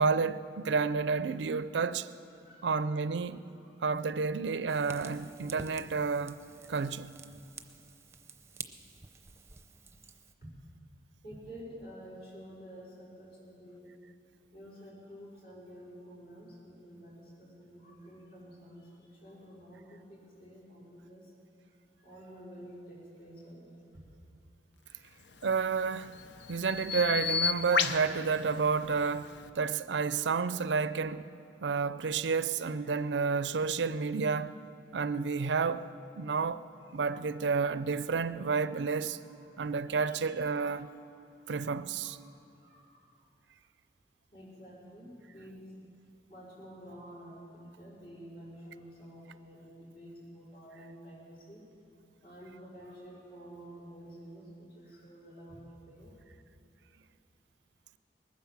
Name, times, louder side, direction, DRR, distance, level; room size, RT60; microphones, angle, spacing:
voice 1, 0.0-2.1 2.6-3.4 3.8-6.4 6.7-7.1 25.4-26.1 26.5-31.3 31.6-34.5 34.9-35.9 36.2-36.6 36.9-39.2 39.6-40.9 41.5-42.2, right 5 dB, 90° right, 0.5 m, -30 dB
voice 2, 2.2-2.9 3.6-4.0 10.4-10.5 11.2-13.9 14.5-21.3 22.0-23.7 32.8-32.9 37.7-37.9 38.2-40.3 40.8-40.9 41.5-41.7 42.0-42.2 42.6-43.0 44.3-45.7 46.3-51.6 52.2-56.1, equal, 60° left, 4.9 m, -50 dB
Fire, 4.7-10.3, right 4 dB, 15° right, 0.6 m, -49 dB
Bird vocalization bird call bird song, 25.3-29.5, left 6 dB, 85° left, 0.7 m, -34 dB
20.0 x 9.7 x 7.3 m
head